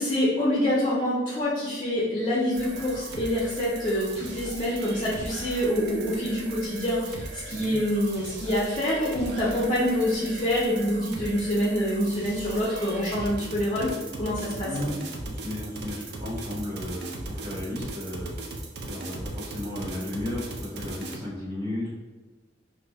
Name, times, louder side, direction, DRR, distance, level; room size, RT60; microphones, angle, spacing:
voice 1, 0.0-13.9 14.2-14.7, equal, 30° left, -7 dB, 0.6 m, -26 dB
sound 1, 2.5-21.2, right 2 dB, 60° right, 0.4 m, -38 dB
voice 2, 14.6-18.3 18.8-21.9, left 1 dB, 25° right, -10 dB, 0.9 m, -34 dB
2.6 x 2.0 x 3.4 m, 1.2 s
head